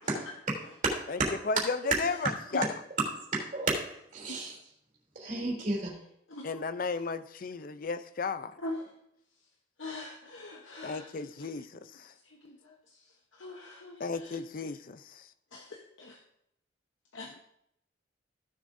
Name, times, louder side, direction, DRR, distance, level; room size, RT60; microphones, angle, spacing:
voice 1, 0.8-1.4 2.6-2.7 3.3-4.5 5.1-5.9, right 2 dB, 40° right, -3 dB, 3.1 m, -32 dB
voice 2, 1.4-2.7 6.4-8.5 10.8-12.1 14.0-15.3 17.3-17.4, left 4 dB, 45° left, 13 dB, 0.5 m, -34 dB
voice 3, 9.8-11.0 13.4-14.0 15.5-16.2 17.1-17.3, left 2 dB, 90° left, 1 dB, 1.0 m, -41 dB
15.5 x 7.3 x 2.6 m, 0.76 s
head